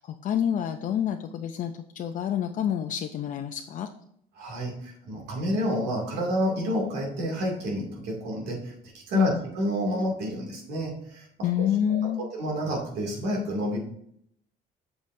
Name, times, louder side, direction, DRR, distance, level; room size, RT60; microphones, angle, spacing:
voice 1, 0.0-3.9 9.1-9.4 11.4-12.2, left 9 dB, 50° left, 6 dB, 0.5 m, -28 dB
voice 2, 4.4-11.3 11.6-11.7 12.0-13.8, equal, 80° right, 0 dB, 2.4 m, -29 dB
7.3 x 7.0 x 2.6 m, 0.71 s
cardioid pair, 110°, 17 cm